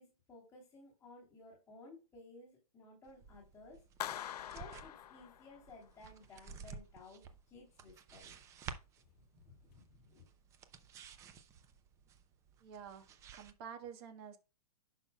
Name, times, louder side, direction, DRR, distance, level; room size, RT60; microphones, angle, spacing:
voice 1, 0.0-3.8 4.4-8.4 9.1-10.2, left 3 dB, 10° left, 2.9 m, -57 dB
sound 1, 3.1-13.5, right 6 dB, 15° right, 0.5 m, -53 dB
Clapping, 4.0-5.9, left 11 dB, 90° left, 0.5 m, -44 dB
voice 2, 12.6-14.4, right 7 dB, 40° right, 1.5 m, -49 dB
11.0 x 5.7 x 2.3 m
hypercardioid pair, 160°, 20 cm